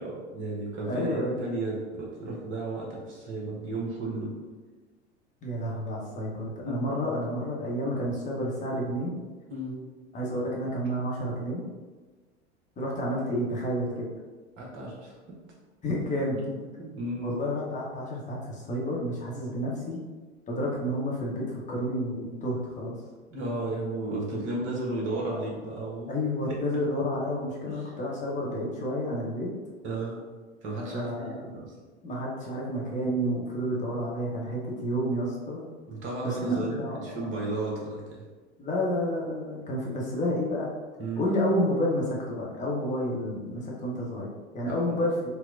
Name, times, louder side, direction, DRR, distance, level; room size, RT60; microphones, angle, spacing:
voice 1, 0.0-4.3 6.6-6.9 9.5-9.7 14.6-15.1 16.4-17.4 23.3-26.1 26.4-26.6 27.7-27.9 29.8-30.2 30.6-31.7 35.9-38.2 41.0-41.2 44.9-45.0, right 2 dB, 35° right, -3 dB, 1.1 m, -34 dB
voice 2, 0.9-1.5 5.4-9.1 10.1-11.6 12.8-14.1 15.8-16.4 17.2-20.0 20.5-23.0 26.1-29.5 30.9-31.5 32.0-35.6 36.2-37.1 37.5-37.6 38.6-40.7 41.2-45.1, equal, 20° left, -4 dB, 0.9 m, -30 dB
4.3 x 2.1 x 2.5 m, 1.3 s
figure-of-eight pair, 85°, 34 cm